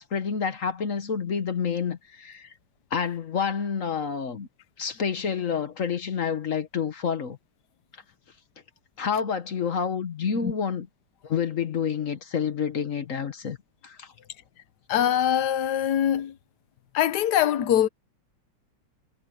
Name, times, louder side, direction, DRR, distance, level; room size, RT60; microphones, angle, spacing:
voice 1, 0.0-2.5 2.9-4.5 4.8-7.4 9.0-10.9 11.2-13.6 13.8-14.1, left 6 dB, 50° left, 1.4 m, -28 dB
voice 2, 14.9-16.3 16.9-17.9, left 10 dB, 65° left, 1.5 m, -23 dB
omnidirectional pair, 2.0 m